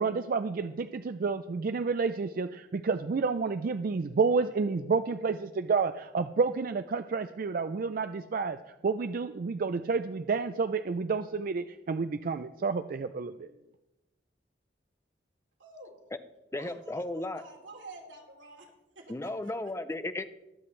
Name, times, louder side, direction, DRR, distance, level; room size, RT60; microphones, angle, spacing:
voice 1, 0.0-13.5, right 4 dB, 50° right, 10 dB, 0.4 m, -30 dB
voice 2, 15.6-16.0 16.5-19.7, right 2 dB, 90° right, 0 dB, 2.9 m, -50 dB
voice 3, 16.5-17.4 19.1-20.3, left 2 dB, 15° left, 11 dB, 0.5 m, -35 dB
22.0 x 7.8 x 3.2 m, 0.96 s
head